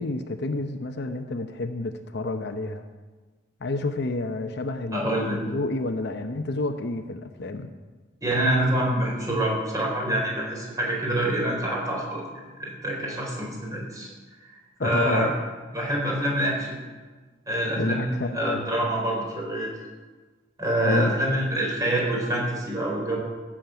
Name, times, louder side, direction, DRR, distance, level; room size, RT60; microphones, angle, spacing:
voice 1, 0.0-2.8 3.6-7.7 14.8-15.3 17.8-18.6 20.7-21.1, left 2 dB, 55° left, 7 dB, 0.8 m, -29 dB
voice 2, 4.9-5.4 8.2-14.1 14.8-15.3 15.7-16.8 17.5-19.7 20.6-23.2, right 1 dB, 20° right, -3 dB, 4.4 m, -26 dB
14.5 x 7.4 x 9.1 m, 1.3 s
head